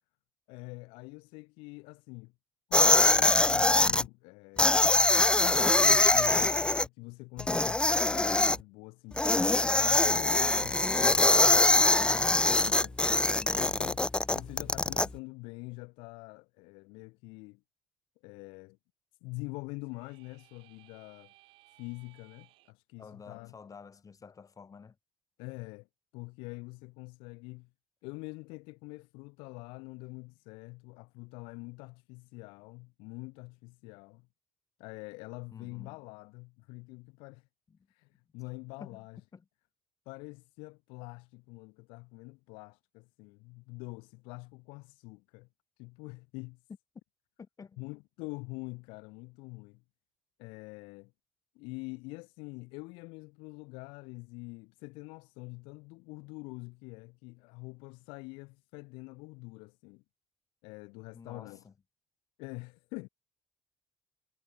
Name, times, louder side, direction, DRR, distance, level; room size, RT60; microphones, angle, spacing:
voice 1, 0.5-2.3 2.7-4.7 5.2-13.0 13.5-17.6 18.2-18.8 19.2-21.3 21.8-23.5 25.4-25.9 26.1-27.7 28.0-34.3 34.8-37.5 37.9-39.2 40.1-45.5 45.8-46.6 47.8-49.8 50.4-51.1 51.5-60.0 60.6-61.6 62.4-63.1, left 27 dB, 90° left, 1.0 m, -45 dB
sound 1, 2.7-4.0 4.6-6.8 7.4-8.6 9.2-15.1, left 2 dB, 10° left, 0.3 m, -23 dB
voice 2, 13.2-13.7 23.0-25.0 35.5-36.0 37.7-37.8 38.8-39.1 39.3-39.4 47.4-47.8 61.1-61.7, left 5 dB, 40° left, 5.5 m, -50 dB
sound 2, 19.8-22.7, right 20 dB, 85° right, 2.6 m, -62 dB
supercardioid pair, 60°, 9 cm